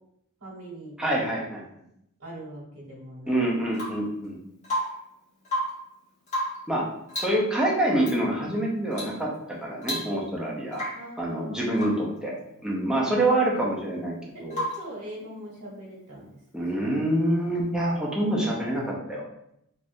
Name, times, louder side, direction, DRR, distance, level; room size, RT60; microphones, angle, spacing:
voice 1, 0.4-1.5 2.2-3.7 10.9-12.1 12.5-12.7 14.3-16.3 16.6-16.9, right 1 dB, 75° right, -4 dB, 1.3 m, -42 dB
voice 2, 1.0-1.6 3.3-4.4 6.7-6.9 7.2-10.8 11.2-12.3 12.6-14.6 16.5-19.2, right 1 dB, 5° right, -4 dB, 0.6 m, -26 dB
Rain / Water tap faucet / Drip, 3.7-4.1 4.6-5.1 5.4-5.9 6.3-6.7 7.1-7.4 8.0-8.2 8.9-9.2 9.5-9.6 9.8-10.4 10.7-11.1 11.7-12.1 14.5-14.9 16.8-16.9, equal, 35° left, 1.4 m, -32 dB
3.4 x 2.6 x 2.6 m, 0.76 s
head